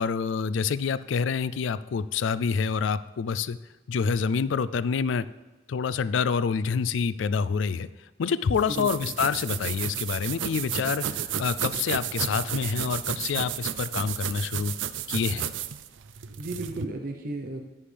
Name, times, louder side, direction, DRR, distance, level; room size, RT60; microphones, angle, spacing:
voice 1, 0.0-3.6 3.9-5.3 5.7-7.9 8.2-14.7 15.1-15.5, left 6 dB, 80° left, 16 dB, 0.4 m, -27 dB
sound 1, 8.6-16.9, right 9 dB, 80° right, 0.5 m, -32 dB
voice 2, 8.7-9.2 16.4-17.6, right 2 dB, 50° right, 3 dB, 0.7 m, -34 dB
11.0 x 10.0 x 3.4 m, 1.1 s
head